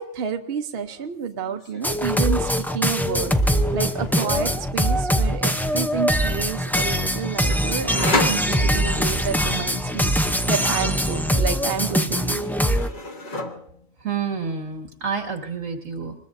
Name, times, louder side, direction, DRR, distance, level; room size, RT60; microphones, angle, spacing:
voice 1, 0.0-12.8, right 6 dB, 55° right, 6 dB, 1.0 m, -30 dB
sound 1, 0.8-1.1 1.3-2.1 3.1-4.5 7.5-9.1 11.3-11.9 12.2-13.9, left 2 dB, 40° left, 1.4 m, -31 dB
sound 2, 1.8-12.9, equal, ahead, 0.4 m, -22 dB
voice 2, 14.0-16.1, right 6 dB, 90° right, 4 dB, 2.4 m, -28 dB
25.5 x 21.0 x 2.6 m, 0.62 s
omnidirectional pair, 1.3 m